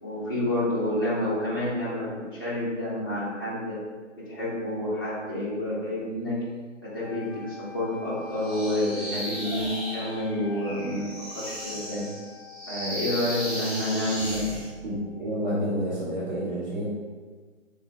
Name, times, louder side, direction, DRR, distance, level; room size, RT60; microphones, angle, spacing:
voice 1, 0.0-3.8 4.1-6.4 6.8-12.1 12.7-14.5, left 1 dB, 20° left, -10 dB, 0.4 m, -29 dB
sound 1, 7.0-15.1, left 6 dB, 90° left, 0.6 m, -47 dB
sound 2, 8.4-14.7, equal, 5° right, 0.8 m, -35 dB
voice 2, 14.8-16.8, equal, 35° right, -9 dB, 0.7 m, -29 dB
3.9 x 2.2 x 2.6 m, 1.5 s
figure-of-eight pair, 150°, 38 cm